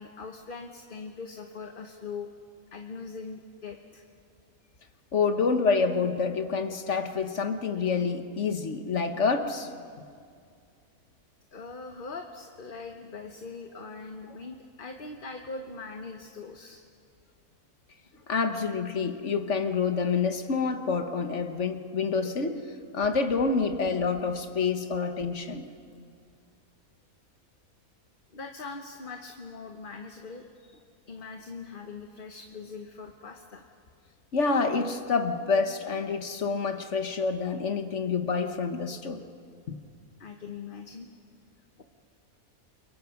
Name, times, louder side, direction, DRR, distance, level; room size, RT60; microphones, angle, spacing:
voice 1, 0.0-2.3 2.7-4.0 11.5-16.8 28.3-30.8 31.1-33.6 40.2-41.1 41.8-41.9, left 4 dB, 40° left, 4 dB, 1.1 m, -41 dB
voice 2, 5.1-9.7 18.3-22.6 22.9-25.6 34.3-39.2 39.7-39.8, left 4 dB, 55° left, 7 dB, 1.5 m, -27 dB
29.0 x 23.0 x 5.8 m, 2.3 s
omnidirectional pair, 1.5 m